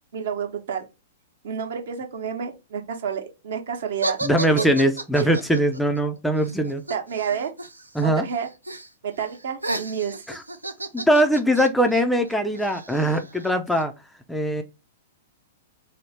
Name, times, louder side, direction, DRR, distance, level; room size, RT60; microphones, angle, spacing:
voice 1, 0.1-0.8 1.4-4.2 4.5-4.7 5.2-5.3 6.9-7.5 8.0-8.5 9.0-10.1, right 7 dB, 55° right, 0.7 m, -29 dB
sound 1, 4.0-8.0 8.3-8.9 9.2-13.8, right 2 dB, 80° right, 0.4 m, -33 dB
voice 2, 4.2-6.8 7.9-8.3 10.3-10.4 10.9-13.9 14.3-14.6, equal, 5° left, 0.3 m, -21 dB
3.2 x 2.0 x 3.1 m
figure-of-eight pair, 105°, 0 cm